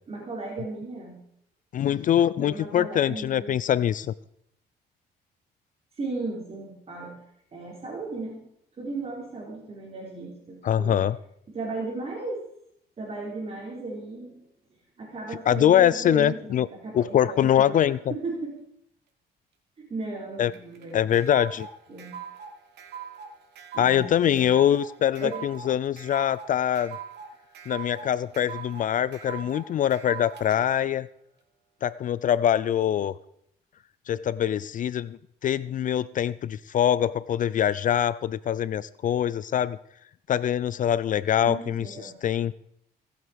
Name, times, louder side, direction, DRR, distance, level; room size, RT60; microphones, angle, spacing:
voice 1, 0.1-1.2 2.4-3.6 6.0-7.1 7.5-8.4 8.8-11.0 11.5-12.4 13.0-14.4 15.0-17.7 18.1-18.5 19.8-21.0 21.9-22.2 23.7-24.5 25.2-25.4 41.4-42.1, right 3 dB, 35° right, -3 dB, 4.0 m, -35 dB
voice 2, 1.7-4.1 10.6-11.2 15.5-16.7 16.9-18.0 20.4-20.5 20.9-21.7 23.8-27.0 27.7-31.1 31.8-33.1 34.1-35.2 35.4-39.8 40.3-42.5, left 10 dB, 50° left, 19 dB, 0.5 m, -23 dB
sound 1, 20.5-30.6, right 7 dB, 70° right, 2.7 m, -41 dB
23.5 x 7.9 x 5.2 m, 0.73 s
cardioid pair, 110°, 18 cm